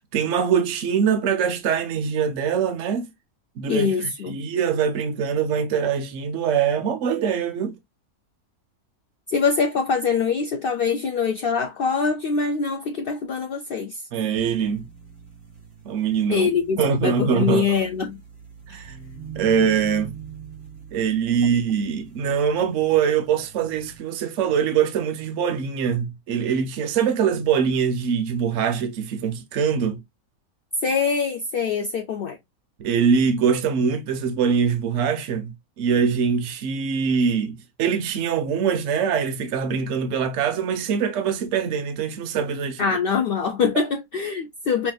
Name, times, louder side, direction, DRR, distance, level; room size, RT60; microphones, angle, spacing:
voice 1, 0.0-3.1 3.6-7.8 14.1-14.8 15.8-16.5 16.8-17.7 18.7-19.0 19.4-20.1 20.9-30.0 32.8-42.9 43.7-43.8, right 7 dB, 65° right, 1.0 m, -23 dB
voice 2, 3.7-4.4 9.3-14.0 16.3-18.2 18.7-18.9 30.8-32.4 42.8-44.9, left 5 dB, 85° left, 0.5 m, -24 dB
sound 1, 14.4-24.0, right 7 dB, 40° right, 1.9 m, -43 dB
5.8 x 2.5 x 2.3 m
omnidirectional pair, 1.5 m